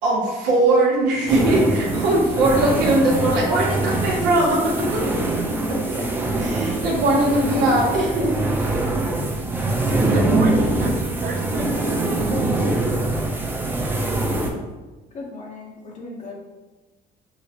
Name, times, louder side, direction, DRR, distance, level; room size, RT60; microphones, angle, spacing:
voice 1, 0.0-6.0 6.4-8.5, right 2 dB, 90° right, -5 dB, 0.8 m, -20 dB
sound 1, 1.3-14.5, right 2 dB, 10° right, 0.5 m, -23 dB
voice 2, 10.1-12.5, right 4 dB, 55° right, 0 dB, 0.7 m, -32 dB
voice 3, 15.1-16.4, left 3 dB, 45° left, -1 dB, 0.7 m, -37 dB
4.9 x 2.0 x 2.8 m, 1.2 s
cardioid pair, 110°, 17 cm